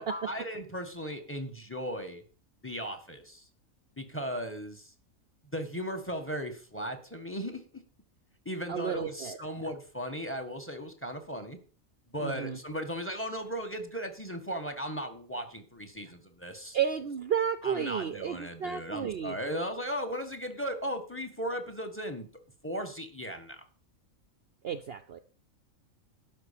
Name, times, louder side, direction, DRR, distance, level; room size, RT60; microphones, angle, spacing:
voice 1, 0.0-2.2 2.6-3.5 4.0-4.9 5.5-7.8 8.4-11.6 12.1-16.8 17.6-22.3 22.6-23.6, equal, 10° left, 8 dB, 1.6 m, -37 dB
voice 2, 8.7-9.7 12.2-12.6 16.7-19.4 24.6-25.2, right 8 dB, 55° right, 11 dB, 0.8 m, -32 dB
12.5 x 5.2 x 8.6 m, 0.41 s
omnidirectional pair, 1.4 m